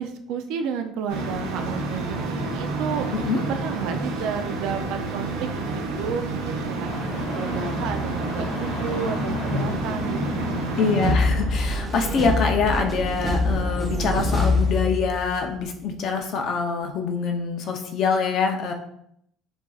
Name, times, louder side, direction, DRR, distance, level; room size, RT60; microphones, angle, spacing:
voice 1, 0.0-3.1 3.5-6.9 7.3-10.5 11.9-12.2, right 7 dB, 65° right, 7 dB, 0.4 m, -32 dB
sound 1, 1.1-11.1, right 3 dB, 85° right, 1.0 m, -29 dB
sound 2, 6.8-11.8, left 2 dB, 30° left, 1.3 m, -34 dB
voice 2, 10.8-18.7, left 5 dB, 45° left, 4 dB, 0.6 m, -25 dB
sound 3, 11.0-15.5, left 2 dB, 15° right, 0.6 m, -24 dB
6.9 x 2.6 x 2.4 m, 0.72 s
cardioid pair, 165°, 0 cm